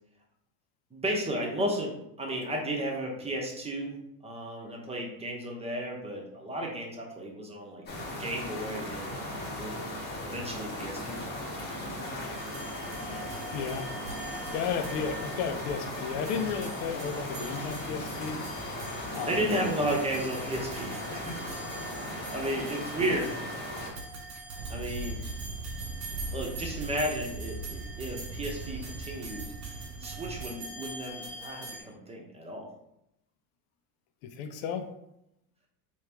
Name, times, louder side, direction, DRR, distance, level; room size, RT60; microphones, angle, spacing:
voice 1, 0.9-3.9 4.2-7.8 8.1-9.8 10.2-11.2 19.3-23.2 24.7-25.2 26.3-29.5 30.0-32.7, right 1 dB, 15° right, -1 dB, 0.9 m, -34 dB
sound 1, 7.9-23.9, left 1 dB, 20° left, 1.0 m, -37 dB
sound 2, 12.3-31.8, right 2 dB, 85° right, 1.3 m, -44 dB
voice 2, 13.5-13.9 14.5-18.4 19.1-19.6 23.0-23.3 34.2-34.9, left 6 dB, 70° left, 7 dB, 0.7 m, -33 dB
sound 3, 24.5-30.5, right 2 dB, 55° right, 0.6 m, -39 dB
3.2 x 3.1 x 3.4 m, 0.81 s
supercardioid pair, 125°, 46 cm